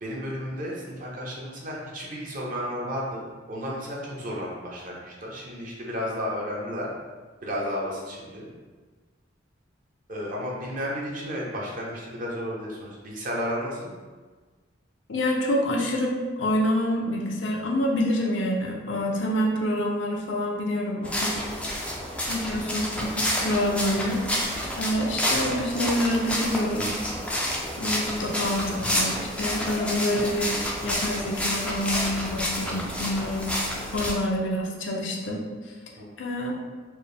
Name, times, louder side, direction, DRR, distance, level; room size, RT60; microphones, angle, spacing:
voice 1, 0.0-6.9 7.4-8.5 10.1-13.9 36.0-36.1, equal, 45° right, -3 dB, 0.8 m, -33 dB
voice 2, 15.1-21.4 22.3-26.9 27.8-30.5 30.8-33.5 33.9-35.4 36.2-36.5, left 1 dB, 75° left, -1 dB, 0.6 m, -27 dB
sound 1, 21.0-34.1, equal, 5° left, 0.4 m, -29 dB
4.3 x 2.0 x 3.3 m, 1.4 s
head